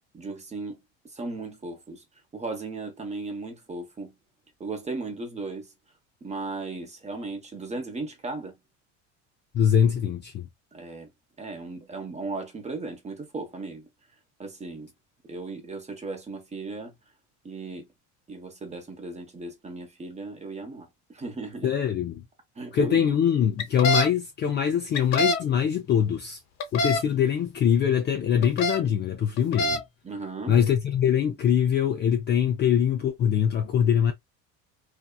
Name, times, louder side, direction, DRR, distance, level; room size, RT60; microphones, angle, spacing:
voice 1, 0.1-0.8 1.0-2.0 2.3-4.1 4.6-5.7 6.2-8.5 10.7-11.1 11.4-13.9 14.4-14.9 15.3-16.9 17.4-17.9 18.3-21.7 22.6-23.1 23.8-23.9 30.0-30.6, right 3 dB, 20° right, 0.9 m, -36 dB
voice 2, 9.5-10.5 21.6-22.2 22.7-26.4 26.7-29.8 30.5-34.1, left 8 dB, 30° left, 0.4 m, -23 dB
sound 1, 23.6-24.1 24.9-25.4 26.6-27.0 28.4-28.8 29.4-29.8, left 1 dB, 45° left, 0.8 m, -24 dB
2.7 x 2.3 x 2.2 m
supercardioid pair, 105°, 37 cm